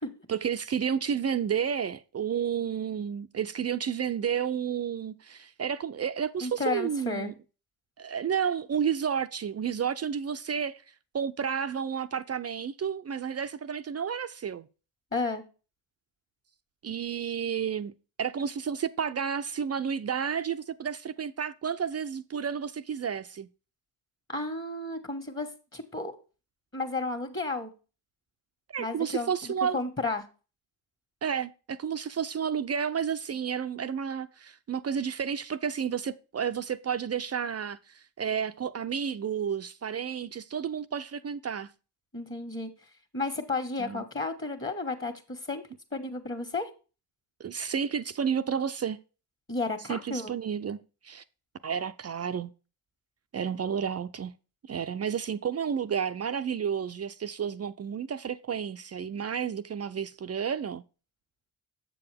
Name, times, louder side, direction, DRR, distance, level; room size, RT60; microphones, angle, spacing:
voice 1, 0.3-7.3 8.0-10.8 11.1-14.7 16.8-17.9 18.2-23.5 28.7-29.8 31.2-41.7 43.8-44.0 47.4-49.0 49.9-50.8 51.0-51.2 51.6-52.5 53.3-54.3 54.7-60.8, right 7 dB, 35° right, 0.6 m, -31 dB
voice 2, 6.4-7.3 15.1-15.4 24.3-26.1 26.7-27.7 28.8-30.2 42.1-42.7 43.1-45.6 45.9-46.7 49.5-50.3, left 3 dB, 25° left, 1.8 m, -32 dB
7.4 x 6.9 x 3.5 m
supercardioid pair, 65°, 46 cm